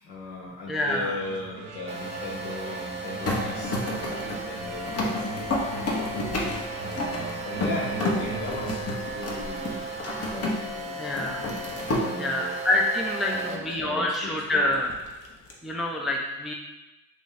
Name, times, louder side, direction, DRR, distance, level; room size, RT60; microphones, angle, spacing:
voice 1, 0.0-5.5 6.8-8.8 9.1-9.8 10.1-12.6 13.3-14.7, left 2 dB, 75° left, -4 dB, 1.4 m, -37 dB
voice 2, 0.7-1.1 11.0-11.4 12.2-14.9 15.6-16.5, left 1 dB, ahead, 0 dB, 0.3 m, -26 dB
sound 1, 1.2-8.8, right 5 dB, 65° right, 0.6 m, -40 dB
sound 2, 1.9-13.6, right 2 dB, 15° right, 0.8 m, -36 dB
sound 3, 3.2-10.8 11.1-12.1 14.7-15.5, left 1 dB, 35° left, 0.8 m, -31 dB
3.0 x 2.5 x 4.0 m, 1.0 s
supercardioid pair, 80°, 40 cm